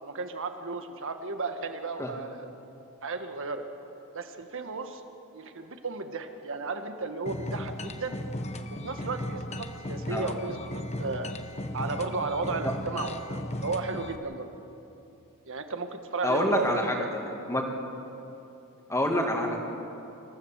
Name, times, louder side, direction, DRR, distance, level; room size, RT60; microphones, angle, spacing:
voice 1, 0.0-2.5 3.0-3.6 4.1-5.0 5.3-8.2 8.7-11.3 11.7-14.5 15.5-17.1 19.4-19.5, right 3 dB, 65° right, 7 dB, 1.5 m, -34 dB
sound 1, 7.3-14.2, left 1 dB, 30° left, 1.0 m, -36 dB
voice 2, 16.2-17.7 18.9-19.6, left 1 dB, 15° left, 1 dB, 2.3 m, -27 dB
26.5 x 15.0 x 7.4 m, 3.0 s
head